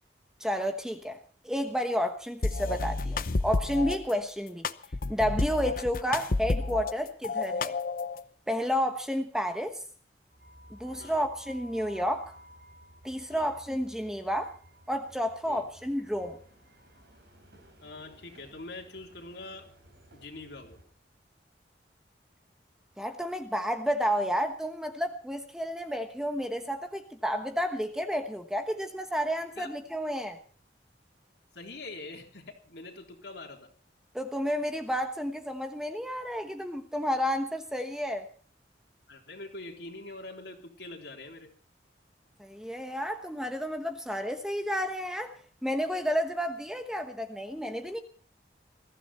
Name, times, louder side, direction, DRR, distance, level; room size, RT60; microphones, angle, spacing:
voice 1, 0.4-1.2 1.4-4.7 5.1-7.7 8.5-9.8 10.7-12.3 13.0-14.5 14.9-16.4 23.0-30.4 34.1-38.2 42.4-48.0, equal, 5° right, 7 dB, 1.2 m, -31 dB
sound 1, 2.4-4.0 4.6-6.9 7.2-8.2, left 3 dB, 50° left, 0.7 m, -30 dB
sound 2, 10.3-20.8, equal, 65° right, 5.9 m, -54 dB
voice 2, 17.8-19.7 20.1-20.8 29.6-29.7 31.5-33.7 39.1-41.5, left 2 dB, 70° left, 1 dB, 3.8 m, -44 dB
21.5 x 14.5 x 4.4 m, 0.42 s
head